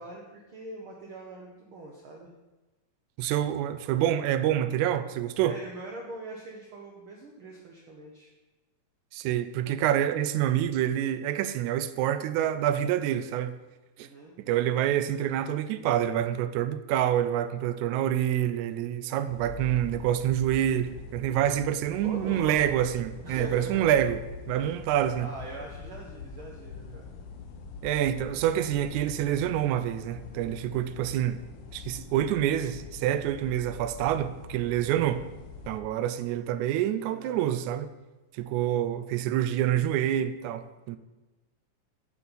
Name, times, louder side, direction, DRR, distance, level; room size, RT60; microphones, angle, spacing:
voice 1, 0.0-2.3 5.4-8.3 14.0-14.3 22.0-22.6 23.2-24.0 24.5-24.8 25.2-27.1 37.1-37.5, right 2 dB, 65° right, 1.3 m, -42 dB
voice 2, 3.2-5.6 9.1-13.6 14.0-14.1 14.4-24.2 24.5-25.3 27.8-31.4 31.7-35.3 35.7-37.9 38.3-41.0, right 11 dB, 90° right, 2.0 m, -27 dB
sound 1, 19.3-35.8, left 4 dB, 80° left, 1.2 m, -44 dB
8.2 x 4.2 x 6.9 m
omnidirectional pair, 3.3 m